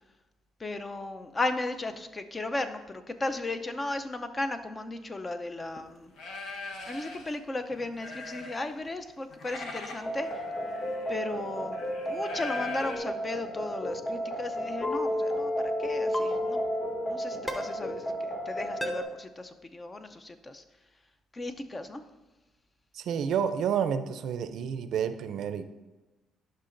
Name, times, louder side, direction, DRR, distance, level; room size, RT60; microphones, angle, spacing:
voice 1, 0.6-6.1 6.9-10.3 11.1-11.8 12.1-20.6 21.3-22.0, left 2 dB, 25° left, 9 dB, 0.6 m, -35 dB
sound 1, 5.6-5.8 6.2-7.4 7.7-8.9 9.2-13.0, left 3 dB, 70° left, 1.1 m, -41 dB
sound 2, 10.0-19.0, equal, 40° left, 2.3 m, -32 dB
sound 3, 14.8-15.0 16.1-16.3 17.5-17.6 18.8-18.9, left 1 dB, 10° left, 0.9 m, -32 dB
voice 2, 22.9-25.6, right 8 dB, 70° right, 11 dB, 0.5 m, -29 dB
11.5 x 5.7 x 2.6 m, 1.1 s
cardioid pair, 95°, 0 cm